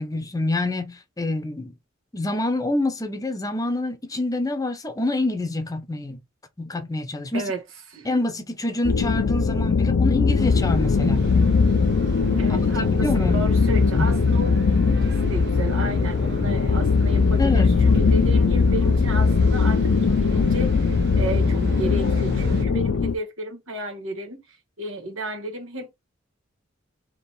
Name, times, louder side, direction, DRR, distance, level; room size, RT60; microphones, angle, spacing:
voice 1, 0.0-1.7 2.1-6.2 6.6-7.4 8.0-11.3 12.5-13.4 14.0-14.1 17.4-17.8, left 2 dB, 20° left, 0.7 m, -26 dB
sound 1, 8.8-23.1, left 5 dB, 70° left, 0.5 m, -20 dB
sound 2, 10.4-22.6, right 1 dB, 60° right, 1.2 m, -32 dB
voice 2, 12.4-25.9, right 1 dB, 80° right, 1.4 m, -33 dB
3.7 x 3.0 x 4.2 m
head